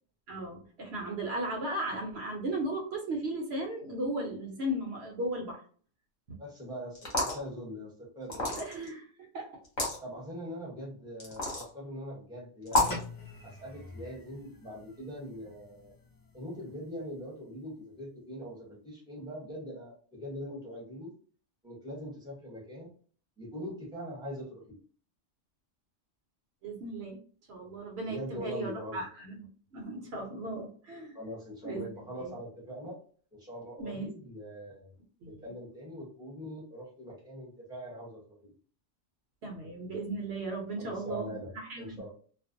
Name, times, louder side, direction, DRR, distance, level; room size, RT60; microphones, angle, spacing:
voice 1, 0.3-5.6 6.3-6.4 8.6-9.1 9.3-9.6 26.6-27.2 27.5-31.2 31.6-31.9 32.2-32.3 33.8-34.1 35.2-35.4 39.4-42.1, right 1 dB, 70° right, 1 dB, 0.9 m, -36 dB
voice 2, 6.4-8.6 10.0-13.0 13.4-15.9 16.3-21.1 21.6-22.9 23.4-24.8 28.0-29.0 31.1-33.0 33.3-34.9 35.3-38.5 40.8-42.1, equal, 5° right, -3 dB, 0.7 m, -42 dB
sound 1, 7.0-7.4 8.3-8.9 9.6-10.0 11.2-11.7 12.7-13.0, left 2 dB, 45° left, 0.9 m, -29 dB
sound 2, 12.7-17.4, left 2 dB, 30° left, 0.4 m, -46 dB
2.4 x 2.1 x 2.5 m, 0.43 s
omnidirectional pair, 1.2 m